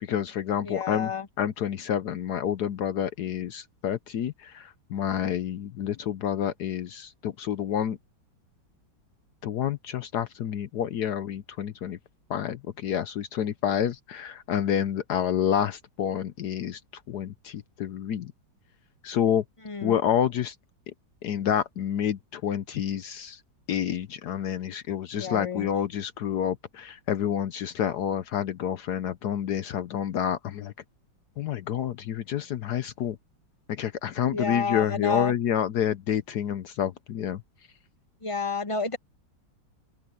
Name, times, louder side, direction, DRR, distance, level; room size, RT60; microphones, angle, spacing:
voice 1, 0.0-1.1 1.4-8.0 9.4-12.0 12.3-16.8 17.1-18.3 19.0-19.4 19.8-20.5 21.2-23.4 23.7-30.7 31.4-33.2 33.7-37.4, left 9 dB, 65° left, 1.2 m, -28 dB
voice 2, 0.6-1.3 19.6-19.9 25.1-25.7 34.3-35.3 38.2-39.0, left 4 dB, 25° left, 0.7 m, -30 dB
open air
omnidirectional pair, 2.0 m